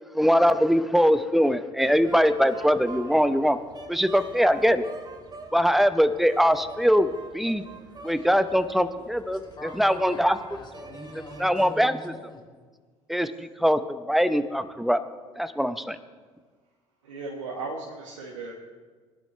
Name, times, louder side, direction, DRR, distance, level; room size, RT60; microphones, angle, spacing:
voice 1, 0.1-3.6 3.9-4.9 5.5-7.6 8.0-10.4 11.4-12.1 13.1-15.0 15.4-16.0, equal, ahead, 12 dB, 0.9 m, -22 dB
sound 1, 1.8-11.7, right 4 dB, 25° right, 1.7 m, -45 dB
voice 2, 9.3-12.5, left 2 dB, 30° left, 1 dB, 3.8 m, -43 dB
voice 3, 17.0-18.5, right 3 dB, 85° right, -2 dB, 1.7 m, -36 dB
21.5 x 11.5 x 3.3 m, 1.5 s
hypercardioid pair, 65°, 15 cm